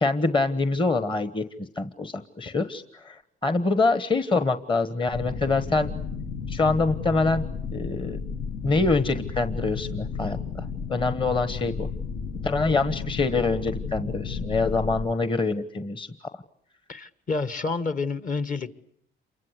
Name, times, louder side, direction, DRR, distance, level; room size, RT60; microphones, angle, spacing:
voice 1, 0.0-5.9 6.5-8.2 8.6-11.9 12.4-16.1, left 3 dB, 25° left, 11 dB, 1.2 m, -25 dB
sound 1, 5.1-15.1, left 5 dB, 80° left, 2.0 m, -33 dB
voice 2, 16.9-18.7, left 4 dB, 40° left, 12 dB, 1.5 m, -29 dB
28.0 x 24.0 x 8.2 m, 0.69 s
cardioid pair, 90°, 20 cm